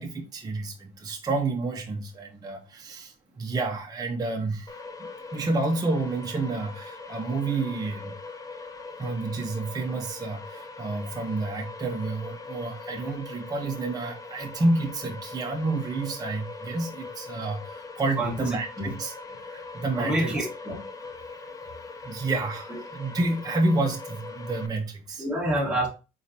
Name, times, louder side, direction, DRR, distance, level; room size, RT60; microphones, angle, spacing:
voice 1, 0.0-8.1 9.0-19.1 19.4-20.3 22.0-25.3, right 2 dB, 20° right, 0.8 m, -29 dB
sound 1, 4.7-24.7, left 3 dB, 20° left, 0.7 m, -41 dB
voice 2, 18.2-18.5 18.8-18.9 19.9-20.8 22.7-22.8 25.2-25.9, right 1 dB, 5° right, 1.5 m, -27 dB
4.0 x 3.8 x 2.7 m
cardioid pair, 110°, 17 cm